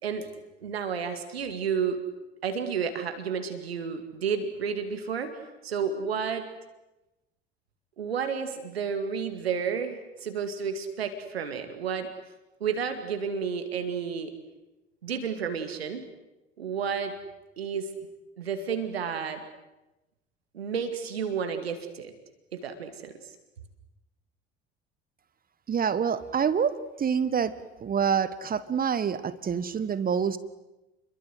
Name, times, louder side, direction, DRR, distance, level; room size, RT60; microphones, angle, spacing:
voice 1, 0.6-2.0 2.4-5.3 5.6-6.5 8.0-12.1 12.6-14.3 15.0-16.0 16.6-17.1 17.6-17.9 18.4-19.4 20.5-22.1 22.5-23.4, right 6 dB, 75° right, 8 dB, 2.2 m, -31 dB
voice 2, 25.7-27.5 27.8-30.4, right 7 dB, 30° right, 15 dB, 1.4 m, -26 dB
30.0 x 23.0 x 8.0 m, 1.0 s
figure-of-eight pair, 65°, 31 cm